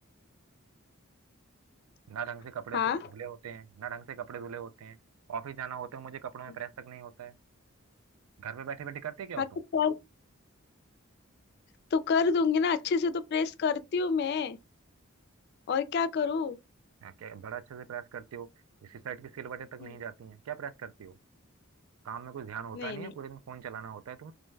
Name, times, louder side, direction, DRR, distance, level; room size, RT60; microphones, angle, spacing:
voice 1, 2.1-5.0 5.3-7.4 8.4-9.6 17.0-18.5 18.8-21.2 22.0-24.3, right 8 dB, 90° right, 0.3 m, -40 dB
voice 2, 11.9-14.6 15.7-16.6 19.8-19.9 22.7-23.1, left 5 dB, 50° left, 0.3 m, -28 dB
2.5 x 2.2 x 3.1 m
head